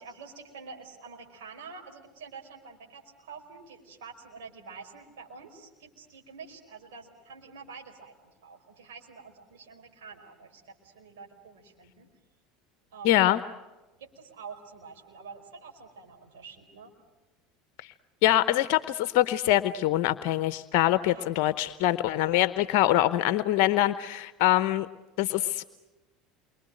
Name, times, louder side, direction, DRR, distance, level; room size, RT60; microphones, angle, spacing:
voice 1, 0.0-8.1 8.4-12.1 12.9-13.3 14.0-16.9 21.0-21.3, right 5 dB, 75° right, 3 dB, 5.1 m, -47 dB
voice 2, 13.0-13.4 18.2-24.9 25.2-25.6, left 14 dB, 65° left, 13 dB, 0.8 m, -24 dB
29.0 x 24.0 x 7.8 m, 1.2 s
hypercardioid pair, 75°, 0 cm